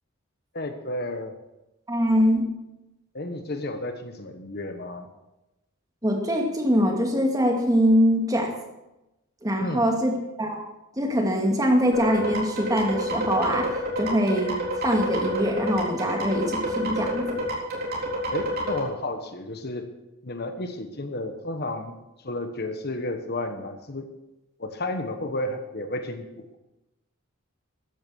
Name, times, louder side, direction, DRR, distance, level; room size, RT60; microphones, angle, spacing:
voice 1, 0.5-1.3 3.1-5.1 9.6-9.8 18.3-19.9 20.2-22.0 22.2-24.1 24.6-26.6, left 1 dB, 50° left, 7 dB, 1.3 m, -32 dB
voice 2, 1.9-2.5 6.0-8.5 9.4-10.6 11.0-14.6 14.8-17.4, equal, 15° right, 2 dB, 2.2 m, -23 dB
sound 1, 11.9-18.8, right 1 dB, 45° right, 3.8 m, -29 dB
14.5 x 10.5 x 6.4 m, 0.97 s
head